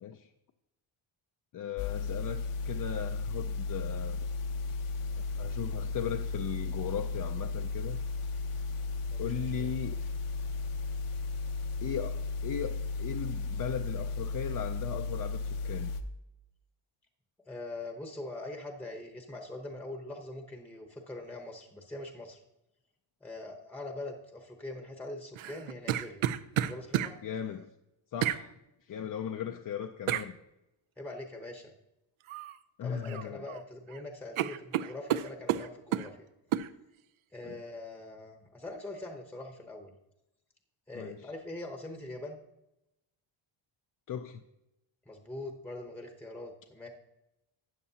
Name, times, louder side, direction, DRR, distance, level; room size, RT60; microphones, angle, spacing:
voice 1, 0.0-0.3 1.5-4.3 5.1-8.0 9.2-10.1 11.8-15.9 27.2-27.7 28.1-28.5 28.8-30.4 32.8-33.4 37.4-37.6 40.9-41.3 44.1-44.4, left 8 dB, 45° left, 5 dB, 0.4 m, -37 dB
sound 1, 1.8-16.0, left 4 dB, 80° left, 0.9 m, -35 dB
voice 2, 17.5-22.4 23.2-26.2 26.6-27.2 31.0-31.7 32.8-36.3 37.3-39.9 40.9-42.4 45.1-46.9, left 2 dB, 5° left, 4 dB, 0.8 m, -42 dB
sound 2, 25.4-27.1 28.2-28.4 30.1-30.3 32.3-32.6 32.9-33.6 33.9-34.0 34.4-36.1 36.5-36.7, right 11 dB, 75° right, 0.6 m, -31 dB
12.5 x 8.5 x 2.8 m, 0.89 s
wide cardioid pair, 145°, 50 cm